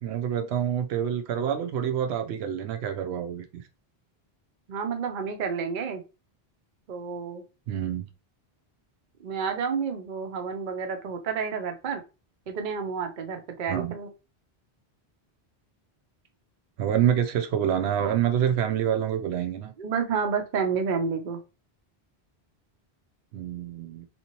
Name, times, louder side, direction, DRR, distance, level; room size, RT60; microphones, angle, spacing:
voice 1, 0.0-3.6 7.7-8.1 13.7-13.9 16.8-19.7 23.3-24.1, right 9 dB, 80° right, 6 dB, 0.9 m, -27 dB
voice 2, 4.7-6.0 6.9-7.4 9.2-12.0 12.5-14.1 19.8-21.4, right 6 dB, 55° right, 5 dB, 0.7 m, -30 dB
4.3 x 2.8 x 2.9 m, 0.30 s
omnidirectional pair, 1.1 m